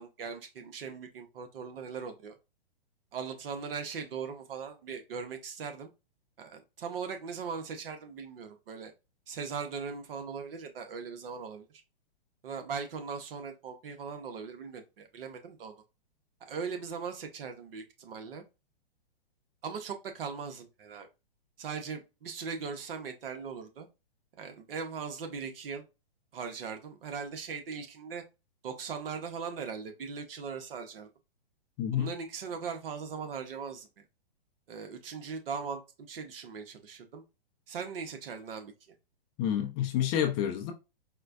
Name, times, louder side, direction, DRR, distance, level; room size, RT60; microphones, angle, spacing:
voice 1, 0.0-2.3 3.1-5.9 6.4-8.9 9.3-11.6 12.4-15.8 16.5-18.4 19.6-21.1 21.6-23.9 24.4-25.8 26.3-28.2 28.6-31.1 31.9-33.9 34.7-37.2 37.7-38.7, right 5 dB, 65° right, 1.0 m, -39 dB
voice 2, 31.8-32.1 39.4-40.7, left 10 dB, 25° left, 0.5 m, -29 dB
4.2 x 2.2 x 2.6 m
hypercardioid pair, 130°, 30 cm